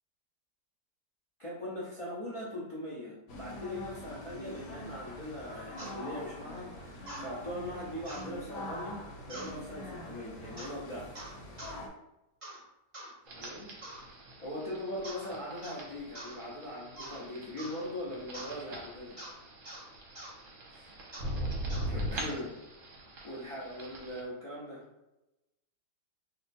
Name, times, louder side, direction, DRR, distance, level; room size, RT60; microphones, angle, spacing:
voice 1, 1.4-11.2 13.3-13.7 14.4-19.2 20.7-20.9 21.9-22.6 23.2-24.9, left 1 dB, 55° left, -7 dB, 0.3 m, -40 dB
sound 1, 3.3-11.9, left 1 dB, 80° left, 1.3 m, -44 dB
sound 2, 5.8-6.0 7.1-7.3 8.0-8.3 9.3-9.6 10.6-10.8 11.1-11.8 12.4-12.6 12.9-13.1 13.8-14.1 15.0-15.3 15.6-15.8 16.1-16.4 17.0-17.2 17.6-17.8 18.3-18.5 19.2-19.3 19.6-19.8 20.1-20.3 21.1-21.3 21.7-21.9, right 1 dB, 30° right, 0.7 m, -45 dB
sound 3, 13.3-24.2, right 1 dB, 60° right, 1.0 m, -41 dB
2.8 x 2.2 x 4.1 m, 0.95 s
omnidirectional pair, 1.8 m